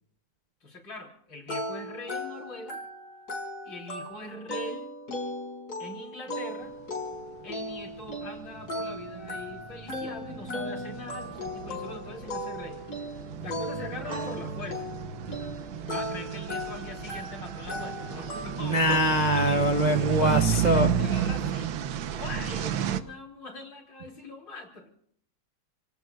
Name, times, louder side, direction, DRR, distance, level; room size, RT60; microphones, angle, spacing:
voice 1, 0.6-2.8 3.6-4.9 5.8-6.7 7.4-14.8 15.9-19.6 20.0-21.7 22.1-24.9, left 2 dB, 75° left, 1 dB, 4.6 m, -42 dB
sound 1, 1.5-19.0, left 1 dB, 55° left, 4.8 m, -37 dB
sound 2, 7.5-7.6 7.9-23.0, right 7 dB, 90° right, 1.7 m, -32 dB
voice 2, 18.6-20.9, right 1 dB, 35° right, 5 dB, 0.8 m, -23 dB
29.0 x 18.0 x 2.4 m, 0.64 s
omnidirectional pair, 2.0 m